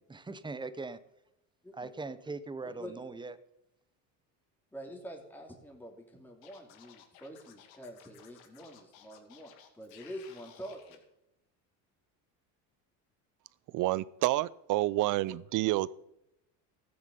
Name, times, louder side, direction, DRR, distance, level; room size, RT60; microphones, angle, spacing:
voice 1, 0.1-1.0 1.7-3.3, right 3 dB, 10° right, 14 dB, 0.9 m, -40 dB
voice 2, 2.6-2.9 4.7-11.0, equal, 5° left, 0 dB, 2.9 m, -46 dB
Scratching (performance technique), 6.4-11.0, left 9 dB, 75° left, 2.4 m, -57 dB
voice 3, 13.7-15.9, right 17 dB, 55° right, 21 dB, 0.6 m, -29 dB
14.0 x 9.7 x 5.4 m, 0.86 s
supercardioid pair, 110°, 38 cm